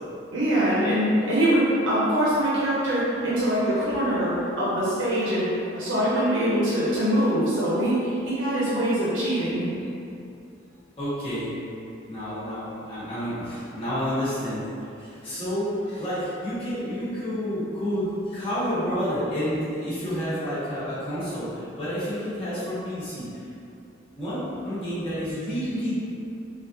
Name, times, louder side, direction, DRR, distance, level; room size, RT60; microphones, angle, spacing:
voice 1, 0.3-5.5 5.7-9.7, right 1 dB, 85° right, -9 dB, 0.7 m, -23 dB
voice 2, 11.0-11.5 12.1-14.6 15.0-23.3 24.2-26.0, equal, 30° left, -13 dB, 1.1 m, -29 dB
3.5 x 2.4 x 2.6 m, 2.6 s
head